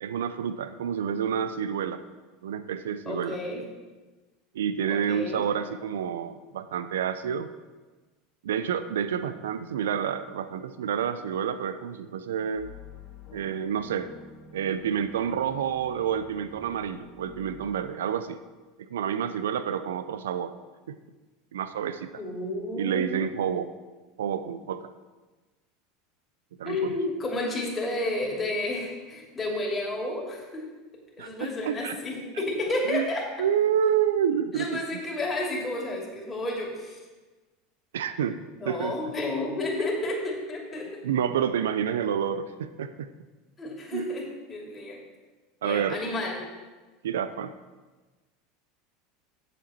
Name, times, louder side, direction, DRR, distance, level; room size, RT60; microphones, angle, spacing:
voice 1, 0.0-2.0 2.4-3.4 4.5-7.5 8.4-12.7 13.3-14.1 14.5-18.4 18.8-20.5 20.9-21.0 21.5-22.1 22.8-23.7 24.2-24.9 26.6-27.0 31.2-32.0 32.9-33.1 33.4-34.8 37.9-38.4 38.6-39.0 41.0-43.1 43.9-44.1 45.6-46.0 47.0-47.5, right 8 dB, 80° right, 12 dB, 0.4 m, -29 dB
voice 2, 3.1-3.6 4.9-5.4 22.2-23.3 26.6-30.6 31.2-33.3 34.5-37.0 38.6-40.9 43.6-45.0 45.6-46.4, left 2 dB, 25° left, -1 dB, 2.6 m, -31 dB
sound 1, 12.5-17.8, left 5 dB, 45° left, 1.9 m, -49 dB
8.0 x 7.3 x 4.3 m, 1.2 s
hypercardioid pair, 85°, 0 cm